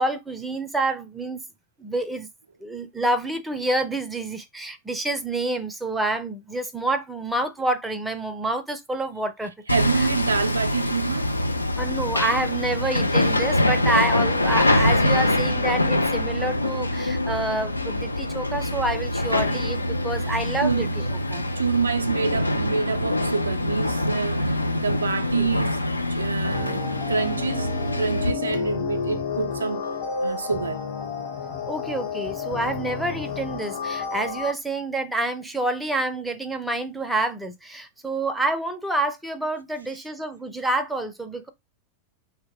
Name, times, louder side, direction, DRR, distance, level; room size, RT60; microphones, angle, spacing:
voice 1, 0.0-1.4 1.8-2.3 2.6-9.5 9.9-10.1 11.8-20.9 21.3-21.4 25.4-25.5 31.6-41.5, right 2 dB, 5° right, 0.4 m, -28 dB
Hammer, 9.7-28.3, left 1 dB, 85° left, 0.3 m, -24 dB
voice 2, 9.7-11.3 20.2-20.4 20.6-20.9 21.3-25.8 26.1-29.9 30.2-30.8, right 5 dB, 75° right, 0.3 m, -27 dB
sound 1, 26.5-34.5, left 5 dB, 45° left, 1.0 m, -31 dB
2.1 x 2.0 x 3.3 m
figure-of-eight pair, 90°, 0 cm